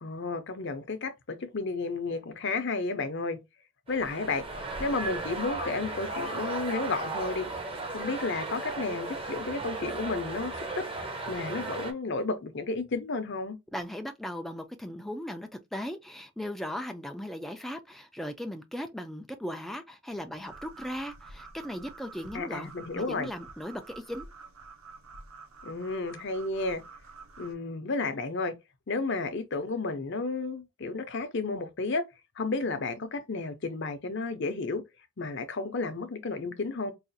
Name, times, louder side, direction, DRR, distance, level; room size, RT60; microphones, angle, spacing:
voice 1, 0.0-3.4 3.9-4.4 4.8-7.4 7.9-10.8 11.3-13.6 22.3-23.3 25.6-26.8 27.4-28.5 28.9-32.0 32.4-34.8 35.2-36.9, left 3 dB, 55° left, 0.6 m, -32 dB
sound 1, 3.9-11.9, right 2 dB, 25° right, 0.7 m, -36 dB
voice 2, 13.7-24.3, equal, ahead, 0.3 m, -38 dB
sound 2, 20.4-27.5, right 4 dB, 75° right, 0.8 m, -49 dB
4.7 x 2.4 x 2.6 m
head